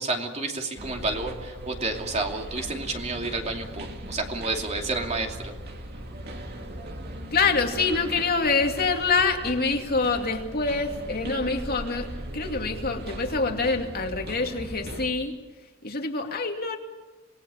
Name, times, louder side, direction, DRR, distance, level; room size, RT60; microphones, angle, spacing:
voice 1, 0.0-5.5, right 3 dB, 30° right, 3 dB, 2.7 m, -30 dB
sound 1, 0.8-15.1, right 1 dB, 50° right, 2.6 m, -38 dB
voice 2, 7.3-15.3 15.8-16.8, left 4 dB, 45° left, 3 dB, 2.4 m, -26 dB
27.0 x 19.5 x 7.1 m, 1.2 s
head